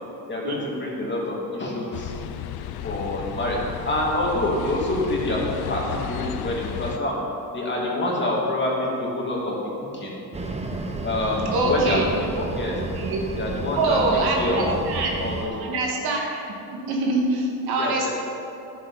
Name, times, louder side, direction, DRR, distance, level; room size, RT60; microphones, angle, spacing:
voice 1, 0.3-2.2 2.8-7.2 7.5-10.1 11.0-12.7 13.4-14.8 15.2-15.8 17.7-18.1, left 1 dB, 30° left, -3 dB, 2.7 m, -27 dB
sound 1, 1.9-7.0, left 11 dB, 75° left, 0.7 m, -33 dB
sound 2, 10.3-15.5, right 2 dB, 15° right, 1.0 m, -31 dB
voice 2, 11.5-12.0 12.9-13.2 13.8-15.1 15.5-16.4 16.7-18.1, right 2 dB, 75° right, -1 dB, 2.2 m, -24 dB
12.0 x 10.5 x 4.2 m, 2.9 s
cardioid pair, 125°, 38 cm